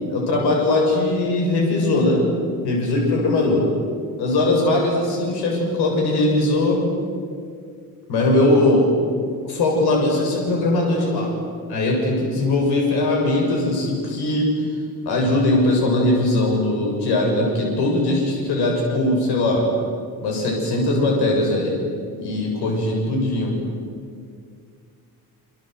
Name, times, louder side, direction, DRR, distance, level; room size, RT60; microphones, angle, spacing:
voice 1, 0.1-2.3 2.6-3.7 4.2-6.8 8.1-8.9 9.4-11.3 11.7-14.7 15.1-19.7 20.2-21.8 22.2-23.5, left 2 dB, 85° left, 0 dB, 7.4 m, -20 dB
28.0 x 26.0 x 8.1 m, 2.2 s
cardioid pair, 170°, 38 cm